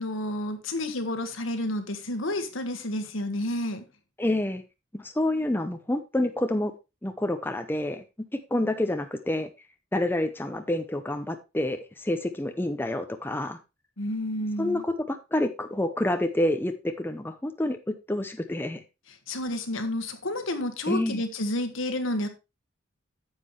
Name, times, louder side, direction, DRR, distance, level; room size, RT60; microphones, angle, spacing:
voice 1, 0.0-3.8 14.0-14.8 19.3-22.3, left 1 dB, 75° left, 1.5 m, -30 dB
voice 2, 4.2-4.6 4.9-6.7 7.0-8.0 8.3-9.5 9.9-13.6 14.6-18.8 20.9-21.2, left 1 dB, 10° left, 0.7 m, -28 dB
9.6 x 7.6 x 3.2 m
head